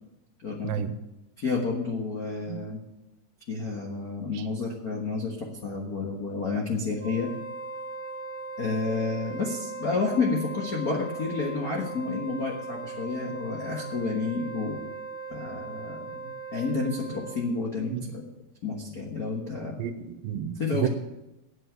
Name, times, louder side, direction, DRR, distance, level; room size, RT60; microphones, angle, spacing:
voice 1, 0.6-1.0 2.5-2.6 4.3-4.4 17.9-18.1 19.8-20.9, right 10 dB, 90° right, 11 dB, 2.6 m, -31 dB
voice 2, 1.4-2.8 3.5-7.3 8.6-14.8 15.3-18.2 18.6-19.9 20.6-20.9, left 4 dB, 65° left, 0 dB, 0.8 m, -30 dB
Wind instrument woodwind instrument, 6.9-17.5, right 3 dB, 70° right, 1.2 m, -39 dB
9.0 x 8.1 x 9.1 m, 0.94 s
omnidirectional pair, 4.0 m